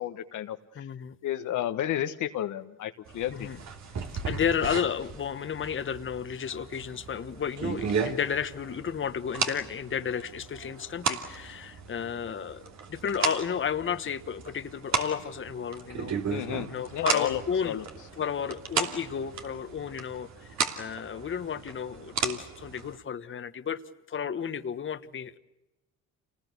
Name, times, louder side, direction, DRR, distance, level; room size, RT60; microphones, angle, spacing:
voice 1, 0.0-0.9 1.2-3.5 16.3-17.8, left 11 dB, 80° left, 8 dB, 1.3 m, -32 dB
voice 2, 0.8-1.2 3.3-3.6 4.2-12.6 12.9-16.2 16.7-17.8 18.2-20.5 20.8-23.8 24.1-25.4, left 7 dB, 40° left, 11 dB, 1.2 m, -32 dB
sound 1, 3.1-23.0, right 6 dB, 65° right, 2.9 m, -35 dB
28.0 x 19.5 x 8.3 m, 1.0 s
cardioid pair, 90°, 30 cm